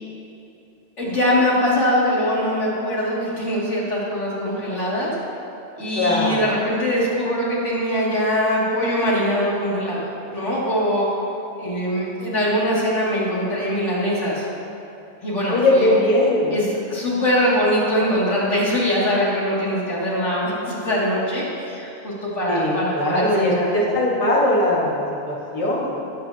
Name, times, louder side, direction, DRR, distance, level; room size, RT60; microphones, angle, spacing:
voice 1, 1.0-5.1 5.8-10.0 10.3-11.1 11.6-14.5 15.2-15.9 16.5-23.7, equal, 90° left, -7 dB, 3.1 m, -22 dB
voice 2, 5.9-6.5 15.5-16.5 22.5-25.0 25.2-26.0, left 1 dB, 30° left, -6 dB, 2.0 m, -20 dB
20.0 x 8.8 x 2.9 m, 2.9 s
omnidirectional pair, 1.2 m